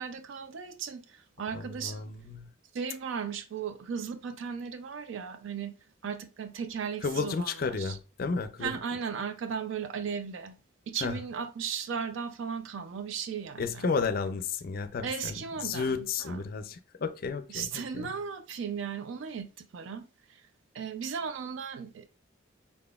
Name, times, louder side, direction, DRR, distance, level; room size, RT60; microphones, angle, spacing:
voice 1, 0.0-2.0 2.7-5.7 6.0-8.0 8.6-10.6 10.9-13.9 15.0-16.4 17.5-20.4 20.7-22.1, right 6 dB, 75° right, 0.4 m, -36 dB
voice 2, 1.5-2.5 7.0-8.8 11.0-11.2 13.6-18.1, left 5 dB, 50° left, 0.4 m, -33 dB
4.0 x 3.5 x 2.2 m
head